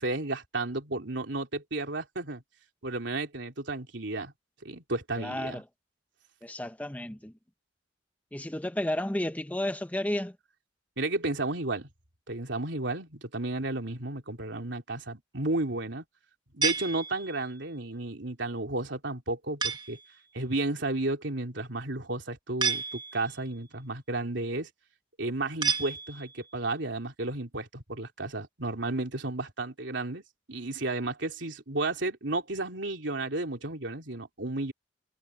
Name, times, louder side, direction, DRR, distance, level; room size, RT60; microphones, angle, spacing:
voice 1, 0.0-2.4 2.8-4.3 4.6-5.6 11.0-11.9 12.3-16.0 16.5-20.0 20.3-24.7 25.2-30.2 30.5-34.7, right 2 dB, 75° right, 3.5 m, -33 dB
voice 2, 5.2-5.6 6.4-7.3 8.3-10.4, left 1 dB, 10° left, 0.8 m, -32 dB
sound 1, 16.6-17.6 19.6-20.1 22.6-23.4 25.6-26.5, right 5 dB, 25° right, 1.3 m, -31 dB
head